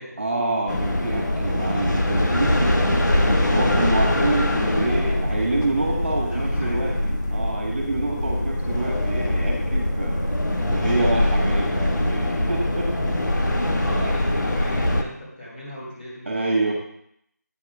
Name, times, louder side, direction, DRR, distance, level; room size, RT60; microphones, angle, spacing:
voice 1, 0.2-7.0 7.3-10.2 10.7-13.5 13.9-14.1 16.3-16.7, right 2 dB, 40° right, 0 dB, 1.7 m, -27 dB
sound 1, 0.7-15.0, left 1 dB, 80° left, 1.3 m, -23 dB
voice 2, 4.5-5.4 6.2-6.9 13.8-16.7, left 1 dB, 35° left, -6 dB, 3.8 m, -37 dB
8.9 x 4.9 x 5.0 m, 0.72 s
figure-of-eight pair, 175°, 10 cm